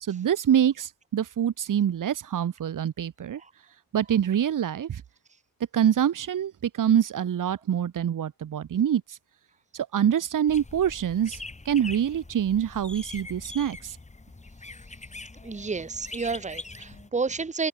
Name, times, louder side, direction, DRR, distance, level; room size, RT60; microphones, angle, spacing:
voice 1, 0.0-3.4 3.9-5.0 5.7-9.2 9.7-11.4 11.6-14.0, right 9 dB, 55° right, 1.1 m, -25 dB
sound 1, 10.5-17.1, left 3 dB, 20° left, 2.6 m, -43 dB
voice 2, 15.4-17.7, right 4 dB, 20° right, 1.1 m, -30 dB
open air
wide cardioid pair, 165°, 38 cm